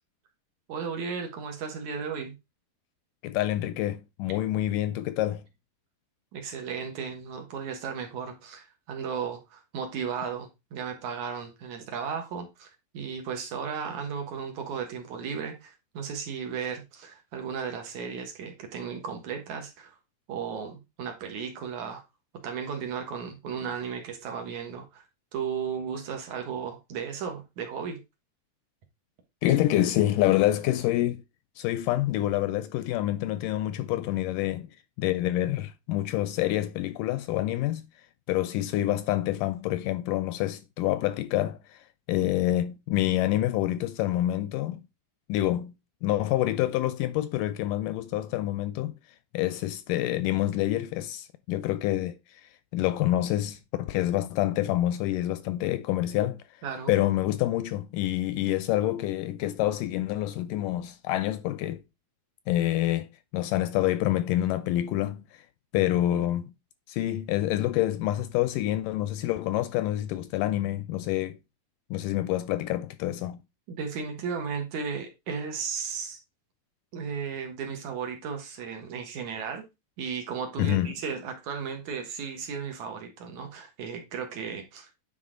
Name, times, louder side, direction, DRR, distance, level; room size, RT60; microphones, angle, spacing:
voice 1, 0.7-2.3 6.3-20.0 20.3-22.0 22.4-25.0 25.3-28.0 42.2-42.3 56.6-56.9 66.1-66.3 73.7-76.2 76.9-79.6 80.0-85.0, right 6 dB, 65° right, 2.4 m, -35 dB
voice 2, 3.2-5.4 29.4-31.2 31.6-34.7 35.0-37.9 38.3-41.8 42.1-44.8 45.3-45.7 46.0-49.0 49.3-52.4 52.7-56.4 56.9-61.8 62.5-65.2 65.7-66.5 66.9-71.3 71.9-73.4 80.6-81.0, left 14 dB, 80° left, 2.0 m, -27 dB
9.4 x 4.2 x 3.7 m
omnidirectional pair, 4.0 m